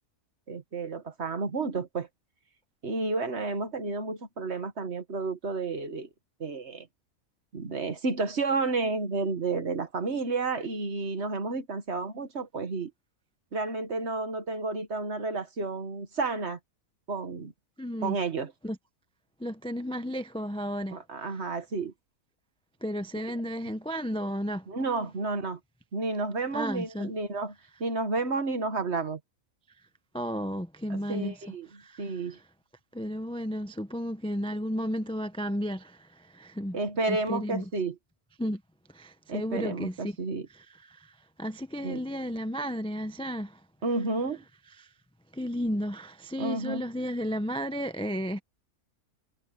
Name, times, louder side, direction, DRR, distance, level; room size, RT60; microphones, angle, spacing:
voice 1, 0.5-2.1 2.8-6.1 6.4-6.9 7.5-12.9 13.5-16.6 17.1-17.5 18.0-18.5 20.9-21.9 23.3-23.4 24.7-25.6 25.9-27.5 27.8-29.2 30.9-32.4 36.7-38.0 39.3-40.5 41.8-42.0 43.8-44.4 46.4-46.8, right 3 dB, 50° right, 1.8 m, -31 dB
voice 2, 17.8-18.2 18.6-18.8 19.4-21.0 22.8-24.7 26.5-27.1 30.1-31.3 31.8-32.1 32.9-36.8 37.1-37.6 38.4-38.6 38.9-40.2 40.9-43.6 45.3-48.4, equal, 5° left, 0.4 m, -33 dB
omnidirectional pair, 1.5 m